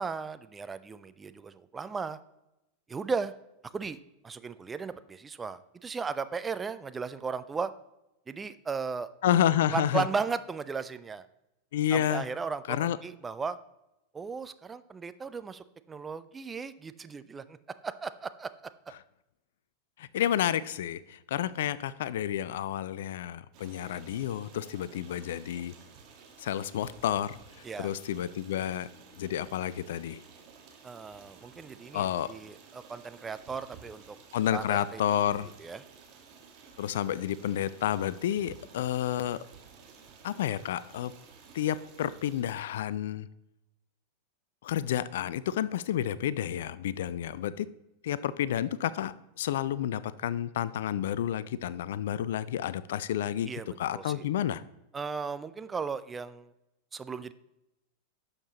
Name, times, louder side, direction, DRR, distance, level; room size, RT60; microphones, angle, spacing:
voice 1, 0.0-2.2 2.9-3.3 3.7-4.0 4.2-7.7 8.3-9.1 9.7-11.3 11.9-13.6 14.1-17.6 17.8-18.5 27.6-27.9 30.8-34.2 34.5-35.8 53.4-53.7 53.9-54.3 54.9-56.5 56.9-57.3, right 5 dB, 15° right, 13 dB, 0.4 m, -36 dB
voice 2, 9.2-10.1 11.7-12.3 12.7-13.0 20.0-25.7 26.4-27.4 27.8-28.9 29.2-30.2 31.9-32.3 34.3-35.5 36.8-39.4 40.2-41.1 41.5-43.3 44.6-47.7 48.0-53.5 53.8-54.6, left 11 dB, 55° left, 17 dB, 0.3 m, -30 dB
Stream, 23.5-42.4, right 5 dB, 40° right, 1.5 m, -54 dB
11.5 x 6.6 x 2.9 m, 0.90 s
figure-of-eight pair, 90°, 0 cm